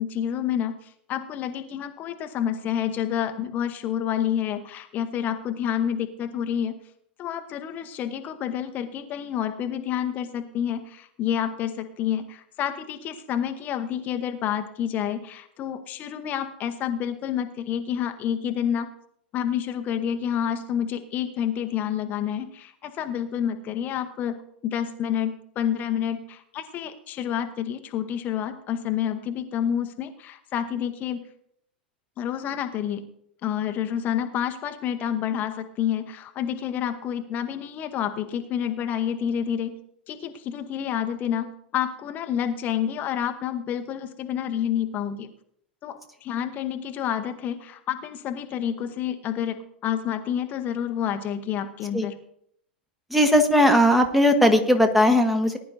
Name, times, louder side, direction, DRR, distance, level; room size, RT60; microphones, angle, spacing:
voice 1, 0.0-6.8 7.2-18.9 19.3-24.4 24.6-31.2 32.2-33.0 33.4-39.8 40.1-45.3 45.8-52.2, left 9 dB, 30° left, 7 dB, 0.9 m, -29 dB
voice 2, 53.1-55.6, equal, ahead, 6 dB, 1.2 m, -18 dB
19.0 x 10.5 x 2.6 m, 0.68 s
figure-of-eight pair, 90°, 5 cm